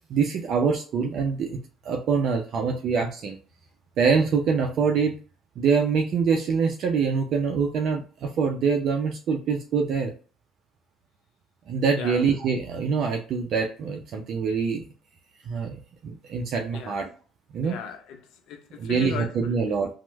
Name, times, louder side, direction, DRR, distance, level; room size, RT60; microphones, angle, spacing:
voice 1, 0.1-1.6 1.8-3.4 4.0-5.1 5.6-10.1 11.7-14.8 15.5-17.1 17.5-17.8 18.8-19.9, right 5 dB, 65° right, 0.5 m, -25 dB
voice 2, 17.6-19.6, left 7 dB, 70° left, 0.6 m, -37 dB
3.0 x 2.1 x 3.2 m
supercardioid pair, 65°, 0 cm